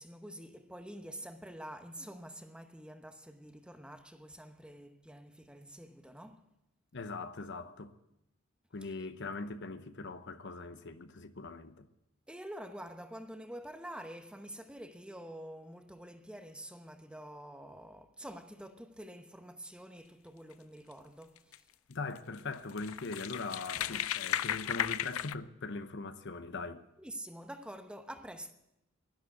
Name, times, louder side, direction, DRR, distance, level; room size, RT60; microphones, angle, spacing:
voice 1, 0.0-6.5 8.8-8.9 12.3-21.7 27.0-28.5, right 1 dB, 5° right, 0.9 m, -47 dB
voice 2, 6.9-7.9 8.7-11.9 21.9-26.8, left 3 dB, 60° left, 0.9 m, -41 dB
sound 1, 21.4-21.6 22.2-22.3 22.5-25.3, left 11 dB, 85° left, 0.5 m, -35 dB
11.5 x 11.5 x 8.0 m
head